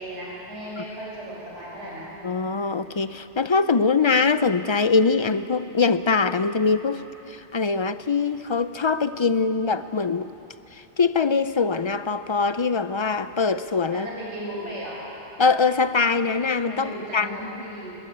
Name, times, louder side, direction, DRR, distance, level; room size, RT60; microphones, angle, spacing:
voice 1, 0.0-2.1 13.9-15.0 16.7-18.0, right 1 dB, 80° right, -5 dB, 7.2 m, -35 dB
voice 2, 2.2-10.3 10.7-14.1 15.4-17.4, left 4 dB, 35° left, 12 dB, 0.4 m, -23 dB
21.5 x 20.0 x 8.7 m, 3.0 s
omnidirectional pair, 1.2 m